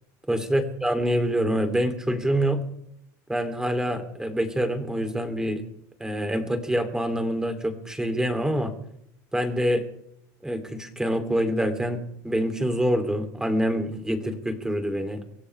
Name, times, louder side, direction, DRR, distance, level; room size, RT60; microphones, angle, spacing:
voice 1, 0.3-2.6 3.3-5.6 6.0-8.7 9.3-9.8 10.4-15.2, equal, 5° right, 6 dB, 2.9 m, -26 dB
24.5 x 16.5 x 3.4 m, 0.77 s
supercardioid pair, 110°, 9 cm